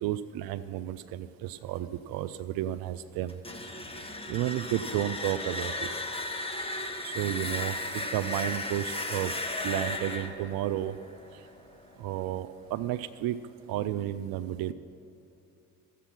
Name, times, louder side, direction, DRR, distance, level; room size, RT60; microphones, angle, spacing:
voice 1, 0.0-3.3 4.3-5.9 7.0-9.3 9.6-10.9 12.0-13.4 13.7-14.7, right 13 dB, 60° right, 13 dB, 0.5 m, -32 dB
sound 1, 3.3-12.1, left 2 dB, 15° left, 1.2 m, -35 dB
13.0 x 8.3 x 5.9 m, 2.6 s
hypercardioid pair, 55°, 42 cm